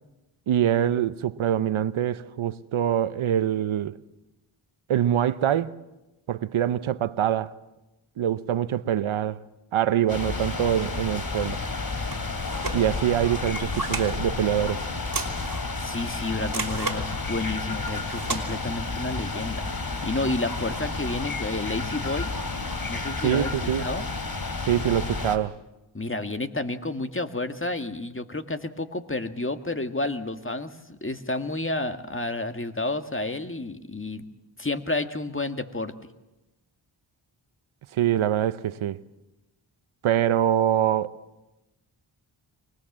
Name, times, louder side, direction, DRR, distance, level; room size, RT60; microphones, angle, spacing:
voice 1, 0.5-4.0 4.9-5.8 6.3-7.5 8.2-9.4 9.7-11.6 12.7-14.8 23.2-23.9 24.7-25.6 37.9-39.0 40.0-41.1, right 10 dB, 80° right, 0.8 m, -24 dB
sound 1, 10.1-25.4, left 3 dB, 45° left, 2.8 m, -31 dB
sound 2, 12.1-12.8 13.4-14.1 15.0-15.7 16.5-17.0 17.9-18.4, right 3 dB, 45° right, 3.2 m, -33 dB
voice 2, 15.8-22.3 22.9-24.1 25.9-34.2 34.6-35.9, left 2 dB, 25° left, 2.0 m, -30 dB
24.5 x 19.5 x 7.4 m
cardioid pair, 40°, 49 cm